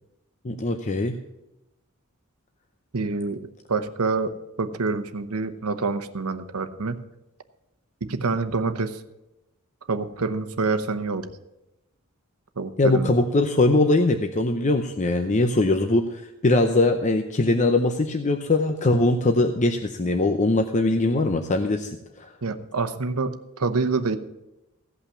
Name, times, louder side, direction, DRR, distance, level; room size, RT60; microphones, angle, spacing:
voice 1, 0.4-1.2 12.8-21.9 22.2-22.3, left 2 dB, 35° left, 6 dB, 0.6 m, -21 dB
voice 2, 2.9-7.0 8.0-9.0 9.9-11.3 12.6-13.1 22.4-24.2, right 4 dB, 80° right, 10 dB, 0.9 m, -27 dB
16.0 x 5.7 x 7.1 m, 0.94 s
head